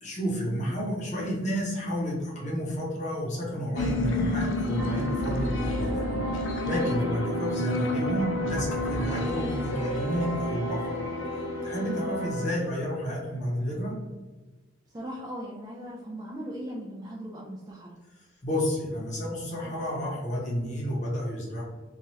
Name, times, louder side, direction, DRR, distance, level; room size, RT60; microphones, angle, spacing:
voice 1, 0.0-6.0 6.6-10.9 11.6-14.0 18.2-21.6, equal, 35° left, -5 dB, 0.9 m, -31 dB
sound 1, 3.8-12.8, left 1 dB, 75° left, 0.5 m, -32 dB
sound 2, 4.8-12.5, equal, 80° right, 0.8 m, -33 dB
voice 2, 14.9-18.0, equal, 20° right, -3 dB, 0.3 m, -39 dB
2.9 x 2.3 x 3.0 m, 1.2 s
head